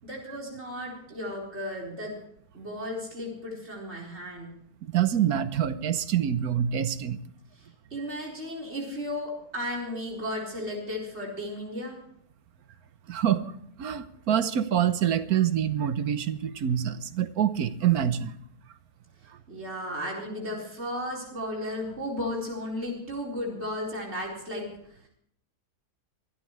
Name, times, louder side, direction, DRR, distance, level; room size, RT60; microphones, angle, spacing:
voice 1, 0.0-2.1 2.5-4.5 7.6-12.0 19.5-24.6, left 1 dB, 40° right, -3 dB, 4.8 m, -34 dB
voice 2, 4.8-7.2 13.1-13.5 13.8-18.3, right 9 dB, 70° right, 12 dB, 1.3 m, -26 dB
24.5 x 13.0 x 3.2 m, 0.69 s
omnidirectional pair, 1.7 m